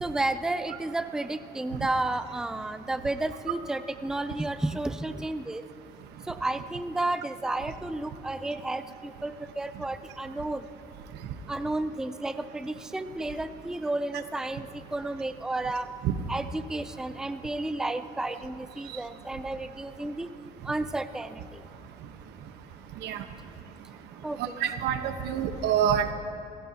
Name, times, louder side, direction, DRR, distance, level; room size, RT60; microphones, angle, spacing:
voice 1, 0.0-5.6 6.3-10.6 11.5-14.7 14.9-15.9 16.3-20.3 20.7-21.4 24.2-24.6, right 2 dB, 5° right, 11 dB, 0.5 m, -32 dB
voice 2, 24.4-26.1, right 8 dB, 85° right, 8 dB, 1.1 m, -27 dB
27.5 x 16.0 x 2.9 m, 2.8 s
cardioid pair, 110°, 17 cm